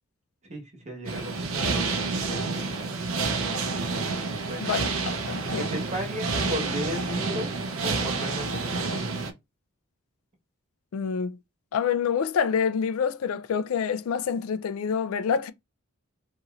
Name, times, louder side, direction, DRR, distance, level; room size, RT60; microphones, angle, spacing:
voice 1, 0.5-2.8 4.5-4.8 5.6-9.0, equal, 30° right, 1.2 m, -36 dB
sound 1, 1.0-9.3, right 3 dB, 65° right, 0.6 m, -29 dB
voice 2, 4.6-5.7 10.9-11.4 11.7-15.5, left 6 dB, 70° left, 0.3 m, -27 dB
2.9 x 2.7 x 2.4 m
head